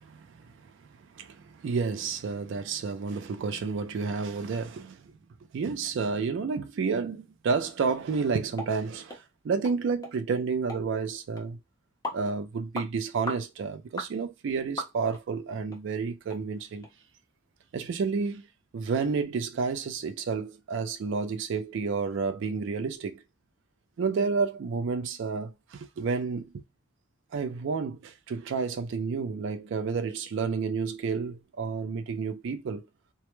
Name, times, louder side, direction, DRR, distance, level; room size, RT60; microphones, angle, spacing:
voice 1, 0.3-0.7 1.1-5.1 5.5-11.6 12.1-16.9 17.7-18.4 18.7-23.2 24.0-26.6 27.3-32.9, right 5 dB, 60° right, 0.3 m, -30 dB
sound 1, 8.6-8.7 9.1-9.2 9.6-9.8 10.0-10.1 10.7-10.8 11.4-11.5 12.0-12.2 12.7-12.9 13.3-13.4 14.0-14.1 14.8-15.2 15.7-15.8 16.3-16.4 16.8-16.9, left 1 dB, 15° left, 0.7 m, -36 dB
2.2 x 2.1 x 2.9 m
head